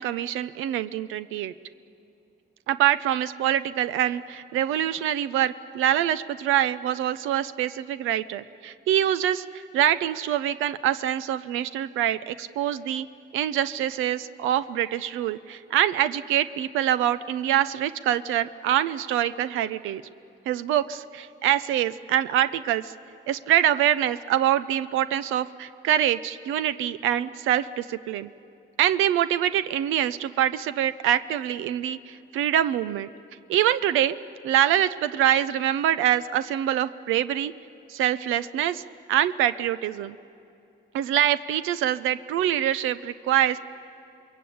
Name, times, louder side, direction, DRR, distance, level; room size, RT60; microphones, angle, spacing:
voice 1, 0.0-1.5 2.7-13.1 13.3-20.0 20.5-22.9 23.3-28.3 28.8-33.1 33.5-34.1 34.4-37.5 37.9-38.8 39.1-40.2 40.9-43.6, right 11 dB, 90° right, 13 dB, 0.6 m, -25 dB
28.0 x 21.5 x 8.6 m, 2.6 s
cardioid pair, 90°, 20 cm